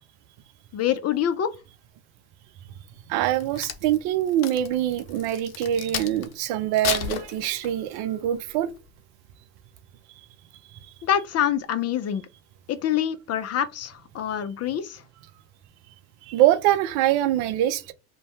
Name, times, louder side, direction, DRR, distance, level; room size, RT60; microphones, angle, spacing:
voice 1, 0.7-1.5 11.0-12.3 12.7-15.0, left 10 dB, 40° left, 0.4 m, -26 dB
voice 2, 3.1-8.7 10.7-10.8 16.2-17.9, right 12 dB, 70° right, 0.5 m, -24 dB
Crack, 3.2-6.3 6.7-7.9 8.5-8.7, left 9 dB, 85° left, 0.6 m, -32 dB
2.7 x 2.2 x 3.1 m
hypercardioid pair, 70°, 40 cm